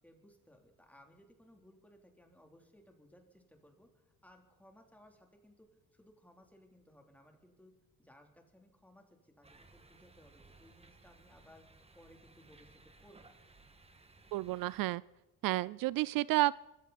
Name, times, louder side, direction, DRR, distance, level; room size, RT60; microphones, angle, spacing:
voice 1, 0.0-7.7 8.0-11.6 11.9-13.3, equal, 5° left, 3 dB, 3.2 m, -62 dB
sound 1, 9.4-14.8, right 3 dB, 15° right, 1.7 m, -61 dB
voice 2, 14.3-15.0 15.4-16.5, right 18 dB, 75° right, 21 dB, 0.5 m, -31 dB
23.5 x 15.0 x 4.1 m, 1.1 s
cardioid pair, 110°, 34 cm